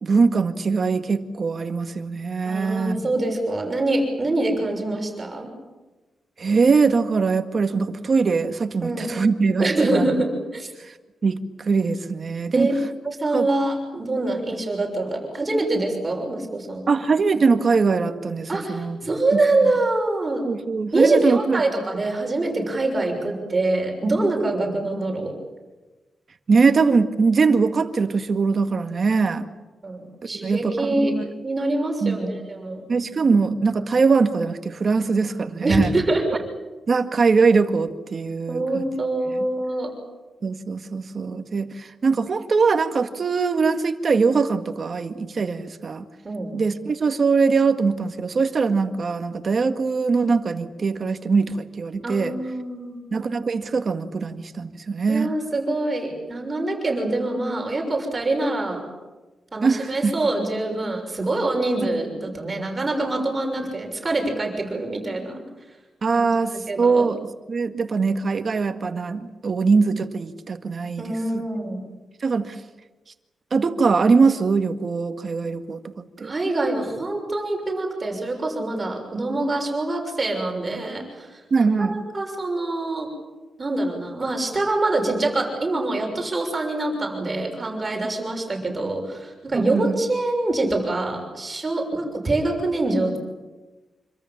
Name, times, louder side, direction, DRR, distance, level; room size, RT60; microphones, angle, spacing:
voice 1, 0.0-3.0 6.4-10.1 11.2-11.4 11.6-12.7 13.3-13.5 16.9-19.0 19.3-19.4 20.4-21.6 26.5-29.5 30.3-31.3 32.0-32.2 32.9-35.9 36.9-38.8 40.4-46.1 46.5-52.3 53.1-55.3 59.6-60.1 66.0-67.2 67.5-71.0 72.2-72.6 73.5-75.8 76.2-76.3 81.5-82.0 89.5-90.0, right 4 dB, 40° right, 7 dB, 1.8 m, -22 dB
voice 2, 2.4-5.5 8.8-9.2 9.6-10.7 12.5-12.8 13.0-16.9 18.5-20.4 20.9-25.3 29.1-29.2 29.8-31.1 31.4-32.9 35.6-36.4 38.5-39.9 46.2-46.5 52.0-53.0 55.1-58.8 59.5-65.4 66.1-67.1 71.0-71.8 76.2-83.1 83.6-93.2, right 2 dB, 25° right, 2 dB, 6.3 m, -25 dB
26.5 x 25.5 x 7.4 m, 1.2 s
wide cardioid pair, 130°, 0 cm